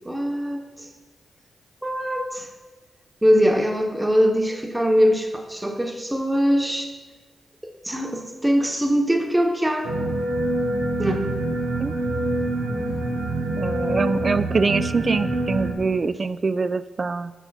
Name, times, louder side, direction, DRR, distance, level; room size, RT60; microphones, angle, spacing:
voice 1, 0.0-0.9 1.8-2.5 3.2-6.9 7.8-9.9 11.0-11.2, equal, 15° right, 3 dB, 1.2 m, -22 dB
sound 1, 9.8-15.7, right 1 dB, 90° right, 0.9 m, -25 dB
voice 2, 12.7-13.1 13.6-17.3, right 4 dB, 50° right, 14 dB, 0.3 m, -24 dB
8.4 x 5.4 x 4.1 m, 1.3 s
supercardioid pair, 45°, 0 cm